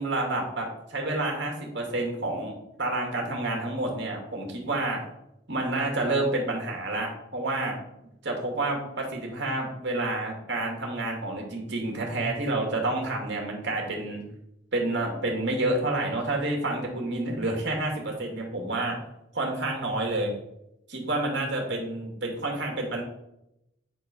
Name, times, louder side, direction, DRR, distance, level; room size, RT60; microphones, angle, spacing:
voice 1, 0.0-2.5 2.8-5.0 5.5-7.7 8.2-14.2 14.7-19.0 19.3-20.3 20.9-23.0, right 2 dB, 60° right, 0 dB, 2.3 m, -29 dB
8.9 x 4.6 x 5.9 m, 0.84 s
head